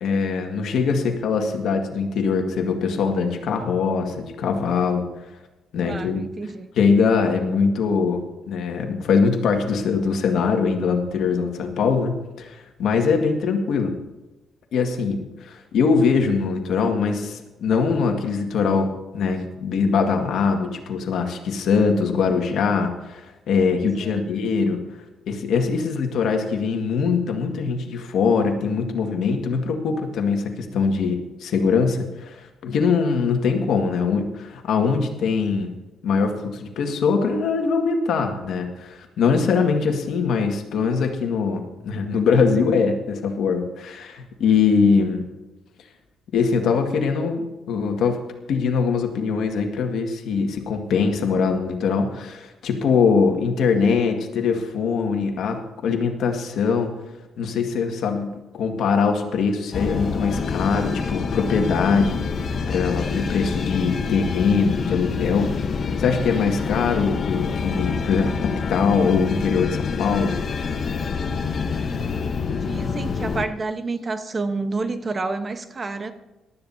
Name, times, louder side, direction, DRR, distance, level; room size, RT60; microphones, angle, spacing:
voice 1, 0.0-5.0 5.7-6.2 6.8-13.9 14.7-24.8 25.3-35.7 36.0-45.2 46.3-48.2 48.5-56.9 57.4-62.2 62.7-65.5 66.0-70.4, left 5 dB, 75° left, 3 dB, 1.8 m, -22 dB
voice 2, 5.8-6.7 24.0-24.3 72.6-76.1, right 3 dB, 35° right, 9 dB, 1.1 m, -29 dB
sound 1, 59.7-73.5, left 5 dB, 50° left, 1.1 m, -26 dB
18.5 x 12.5 x 2.8 m, 1.1 s
cardioid pair, 90°, 0 cm